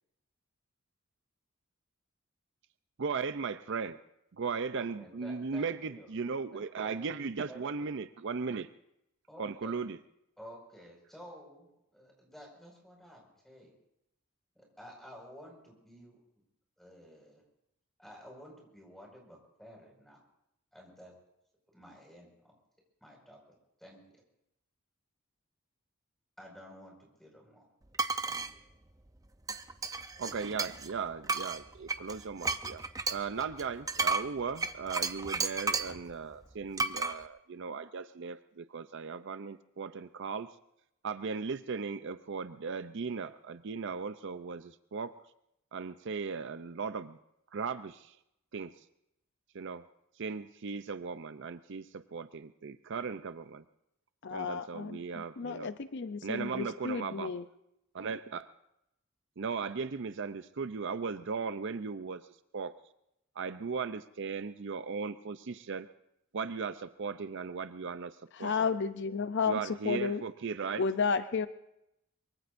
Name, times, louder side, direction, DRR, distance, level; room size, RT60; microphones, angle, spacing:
voice 1, 3.0-4.0 4.4-8.7 9.4-10.0 30.2-40.5 41.0-45.1 45.7-47.2 47.5-48.1 48.5-48.7 49.5-49.8 50.2-53.6 54.3-55.7 56.2-57.3 57.9-58.5 59.4-62.2 62.5-62.7 63.4-65.9 66.3-68.1 68.4-68.5 69.5-70.8, right 5 dB, 60° right, 12 dB, 0.6 m, -37 dB
voice 2, 4.7-6.1 6.5-7.9 9.3-9.8 10.4-13.7 14.5-16.2 16.8-17.4 18.0-20.2 20.7-21.1 21.7-22.6 23.0-24.2 26.4-27.7 28.2-28.6, equal, ahead, -1 dB, 5.5 m, -52 dB
sound 1, 27.9-28.5 29.5-30.9 31.3-36.0 36.8-37.1, right 3 dB, 15° right, 0.6 m, -33 dB
voice 3, 54.2-57.4 68.3-70.2 70.8-71.5, left 5 dB, 60° left, 11 dB, 0.6 m, -32 dB
23.5 x 23.5 x 2.6 m, 0.82 s
head